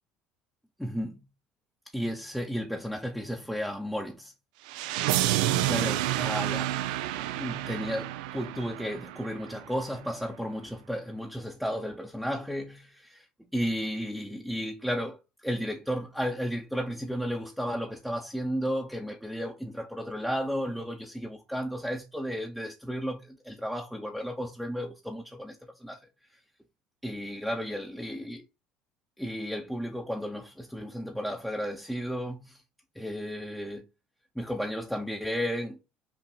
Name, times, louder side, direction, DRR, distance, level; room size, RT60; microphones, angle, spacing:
voice 1, 0.8-1.2 1.9-4.3 5.5-6.8 7.3-26.0 26.3-26.4 27.0-28.5 29.2-32.6 32.9-33.8 34.3-35.8, equal, ahead, 0.7 m, -33 dB
sound 1, 4.7-9.6, right 14 dB, 85° right, 0.4 m, -29 dB
5.7 x 2.5 x 2.3 m
supercardioid pair, 95°, 4 cm